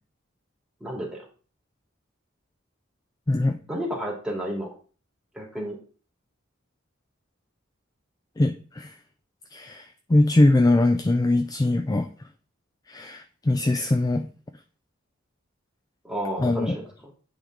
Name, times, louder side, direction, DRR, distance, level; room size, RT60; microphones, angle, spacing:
voice 1, 0.8-1.2 3.7-4.7 5.3-5.8 16.0-16.8, equal, 5° right, 2.2 m, -31 dB
voice 2, 3.3-3.6 8.4-9.0 9.5-12.1 12.9-14.3 16.4-16.8, left 2 dB, 20° left, 0.4 m, -22 dB
10.0 x 3.7 x 3.7 m
head